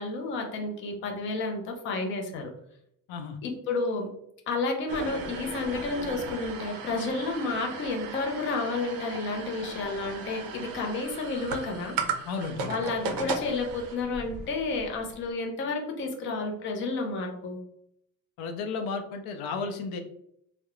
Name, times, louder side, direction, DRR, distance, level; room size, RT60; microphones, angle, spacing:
voice 1, 0.0-2.5 3.4-4.1 4.5-12.0 12.6-17.6, left 3 dB, 35° left, 3 dB, 0.4 m, -31 dB
sound 1, 4.9-15.2, right 4 dB, 70° right, 0.5 m, -37 dB
voice 2, 12.3-12.8 18.4-20.0, left 4 dB, 85° left, 6 dB, 0.5 m, -33 dB
2.3 x 2.0 x 2.9 m, 0.73 s
cardioid pair, 180°, 37 cm